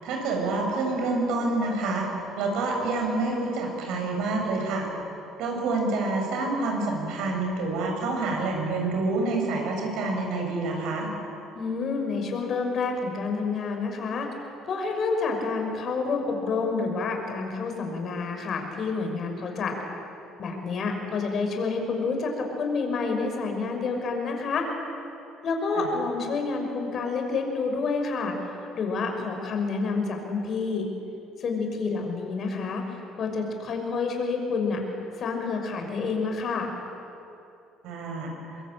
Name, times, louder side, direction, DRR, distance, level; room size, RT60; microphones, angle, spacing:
voice 1, 0.0-4.9 5.4-11.1 25.7-25.9 37.8-38.3, right 3 dB, 75° right, 1 dB, 7.6 m, -27 dB
voice 2, 11.5-14.3 14.6-19.7 20.4-24.7 25.4-28.4 28.8-30.9 31.4-32.8 33.2-34.8 35.2-36.7, left 4 dB, 50° left, 3 dB, 6.0 m, -28 dB
24.5 x 22.5 x 8.9 m, 2.8 s
supercardioid pair, 70°, 0 cm